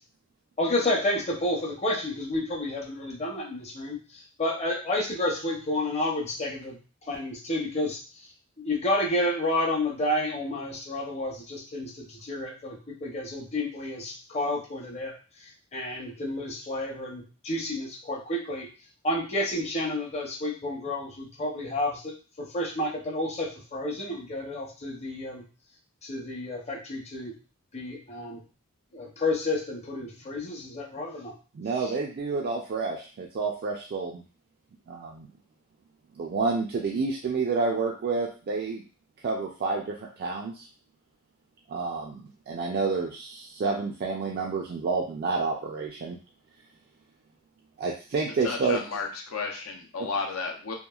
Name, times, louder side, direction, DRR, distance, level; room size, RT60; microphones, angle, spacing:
voice 1, 0.6-6.8 7.1-8.0 8.6-15.1 15.7-18.7 19.0-22.1 22.4-25.4 26.0-27.3 27.7-28.4 28.9-31.3, left 1 dB, 30° left, -2 dB, 0.7 m, -30 dB
voice 2, 31.5-34.2 34.9-35.3 36.1-38.8 39.2-40.7 41.7-46.2 47.8-48.8 50.0-50.1, right 4 dB, 50° right, -1 dB, 0.3 m, -29 dB
voice 3, 48.4-50.7, left 4 dB, 80° left, 2 dB, 0.6 m, -33 dB
2.9 x 2.4 x 2.3 m, 0.37 s
head